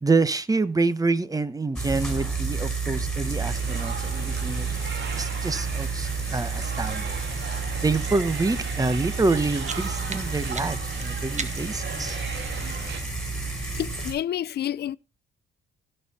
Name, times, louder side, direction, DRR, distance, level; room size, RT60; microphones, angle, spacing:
voice 1, 0.0-4.7 5.2-7.2 7.8-12.2, right 3 dB, 20° right, 1.0 m, -27 dB
sound 1, 1.8-14.1, right 4 dB, 5° left, 5.6 m, -30 dB
sound 2, 3.5-13.0, right 7 dB, 65° right, 1.9 m, -39 dB
sound 3, 9.6-11.9, right 5 dB, 35° right, 1.4 m, -38 dB
voice 2, 13.8-15.0, left 11 dB, 55° left, 0.5 m, -29 dB
16.5 x 5.6 x 4.2 m
cardioid pair, 90°, 20 cm